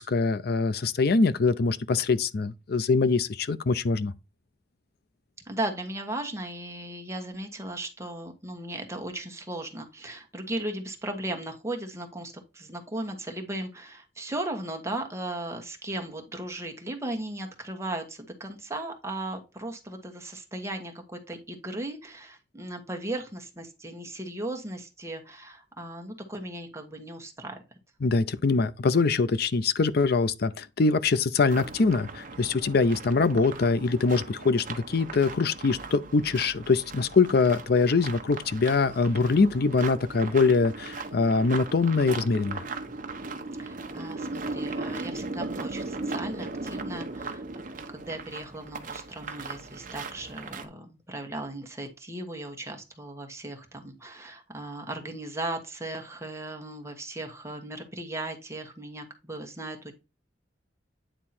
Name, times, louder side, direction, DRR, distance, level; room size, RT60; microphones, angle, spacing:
voice 1, 0.0-4.1 28.0-42.6, left 4 dB, 60° left, 0.5 m, -23 dB
voice 2, 5.5-27.6 43.6-47.6 47.9-59.9, right 1 dB, 15° right, 1.4 m, -37 dB
sound 1, 31.5-50.7, right 3 dB, 50° right, 1.0 m, -38 dB
9.0 x 3.7 x 4.3 m
head